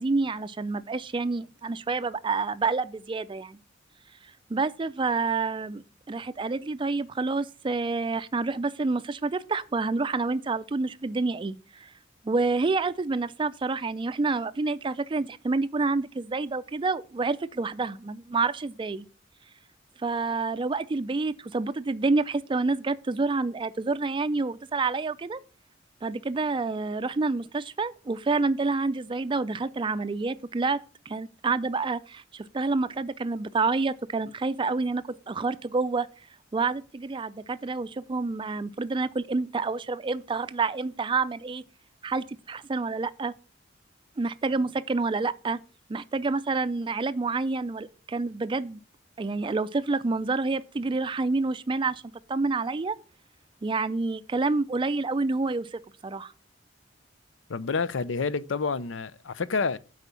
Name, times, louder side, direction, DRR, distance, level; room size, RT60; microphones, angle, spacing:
voice 1, 0.0-3.6 4.5-11.9 12.2-19.1 20.0-25.4 26.0-30.8 31.1-36.1 36.5-41.6 42.0-43.3 44.2-45.6 45.9-48.8 49.2-53.0 53.6-56.3, right 3 dB, 25° right, 0.4 m, -28 dB
voice 2, 57.5-59.8, left 4 dB, 85° left, 0.6 m, -28 dB
8.2 x 5.0 x 6.9 m
head